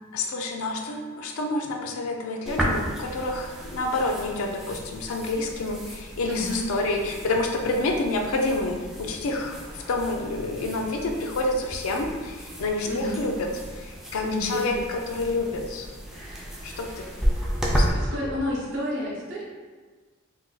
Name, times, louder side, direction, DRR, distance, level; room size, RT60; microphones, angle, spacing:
voice 1, 0.1-13.5 13.7-15.9 16.6-17.1 17.7-18.0, left 2 dB, 85° left, 2 dB, 0.4 m, -28 dB
sound 1, 2.5-17.9, equal, ahead, 0.3 m, -33 dB
voice 2, 6.3-6.6 12.8-13.2 14.2-14.8 17.9-19.4, left 1 dB, 60° right, -4 dB, 0.7 m, -30 dB
2.5 x 2.2 x 3.8 m, 1.4 s
head